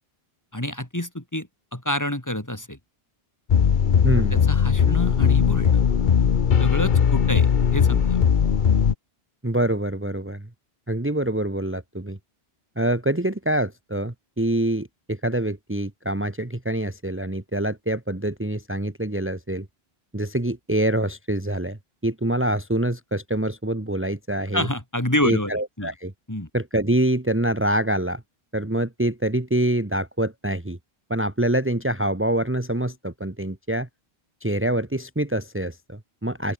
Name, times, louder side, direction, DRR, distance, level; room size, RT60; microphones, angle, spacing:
voice 1, 0.5-2.8 4.2-5.8 6.6-8.2 24.5-25.5 25.8-25.9 26.3-26.5, left 1 dB, 15° left, 2.4 m, -28 dB
sound 1, 3.5-8.9, left 7 dB, 55° left, 1.0 m, -19 dB
voice 2, 4.0-4.4 9.4-10.5 10.9-12.2 12.7-19.7 20.1-24.7 25.2-26.1 26.5-28.2 28.5-30.8 31.1-33.9 34.4-36.5, right 1 dB, 10° right, 1.5 m, -25 dB
open air
omnidirectional pair, 1.0 m